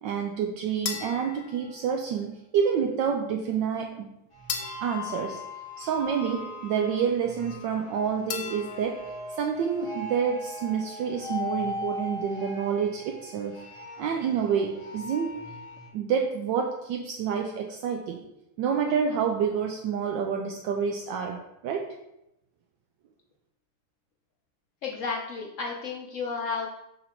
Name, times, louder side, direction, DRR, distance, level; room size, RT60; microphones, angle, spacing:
voice 1, 0.0-4.1 4.8-5.4 5.8-9.1 9.4-13.6 14.0-15.4 15.9-18.2 18.6-21.9, right 7 dB, 75° right, 3 dB, 1.2 m, -28 dB
sound 1, 0.9-2.4 4.5-6.3 8.3-9.4, left 6 dB, 70° left, 1.4 m, -38 dB
sound 2, 4.3-15.9, left 2 dB, 35° left, 0.5 m, -39 dB
voice 2, 24.8-26.7, left 4 dB, 90° left, 0 dB, 0.6 m, -32 dB
5.5 x 3.9 x 4.3 m, 0.85 s
omnidirectional pair, 2.1 m